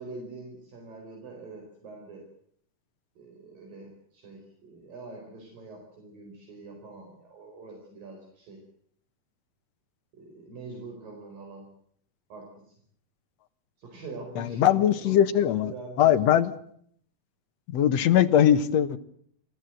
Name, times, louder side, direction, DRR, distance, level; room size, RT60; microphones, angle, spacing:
voice 1, 0.0-2.3 3.2-8.6 10.1-11.7 12.3-12.8 13.8-16.3, right 3 dB, 65° right, 1 dB, 6.3 m, -44 dB
voice 2, 14.4-15.7 16.0-16.5 17.7-19.0, left 10 dB, 60° left, 9 dB, 1.8 m, -21 dB
29.0 x 15.0 x 7.8 m, 0.66 s
omnidirectional pair, 4.3 m